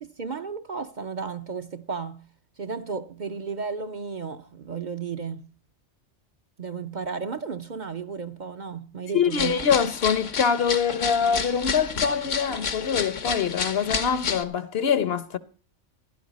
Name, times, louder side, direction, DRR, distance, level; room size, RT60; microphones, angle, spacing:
voice 1, 0.0-2.3 2.6-5.4 6.6-9.6, right 5 dB, 45° right, 0.8 m, -33 dB
voice 2, 9.1-15.4, left 7 dB, 60° left, 1.0 m, -24 dB
sound 1, 9.3-14.4, left 5 dB, 90° left, 1.6 m, -30 dB
16.0 x 12.0 x 4.1 m
omnidirectional pair, 1.2 m